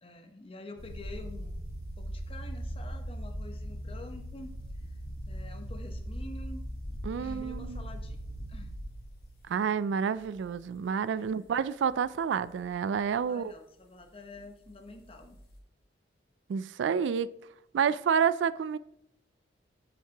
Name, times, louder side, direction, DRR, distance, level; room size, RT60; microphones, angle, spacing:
voice 1, 0.0-1.6 2.0-5.0 5.3-6.6 7.2-8.2 8.5-8.7 11.1-11.5 13.3-15.4, left 1 dB, 30° left, 0.9 m, -47 dB
sound 1, 0.8-9.6 10.3-10.7 11.2-11.3 14.9-15.6, equal, 50° left, 1.6 m, -39 dB
voice 2, 7.0-7.8 9.5-13.5 16.5-17.4 17.7-18.8, right 7 dB, 75° right, 0.3 m, -29 dB
9.1 x 7.3 x 2.9 m
head